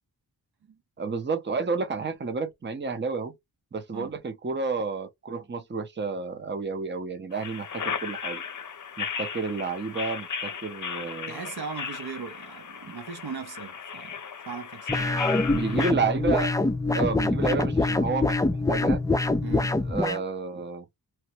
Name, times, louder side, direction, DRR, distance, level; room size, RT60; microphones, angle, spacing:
voice 1, 1.0-3.3 3.7-8.4 9.0-11.4 12.9-13.0 15.5-16.5 16.9-19.0 19.9-20.8, right 4 dB, 30° right, 0.6 m, -30 dB
sound 1, 7.3-15.9, left 6 dB, 50° left, 0.6 m, -36 dB
voice 2, 11.3-14.2 14.5-15.3 19.4-19.7, right 5 dB, 70° right, 0.7 m, -38 dB
sound 2, 14.9-20.2, left 2 dB, 10° left, 0.3 m, -25 dB
2.9 x 2.1 x 2.9 m
wide cardioid pair, 70°, 40 cm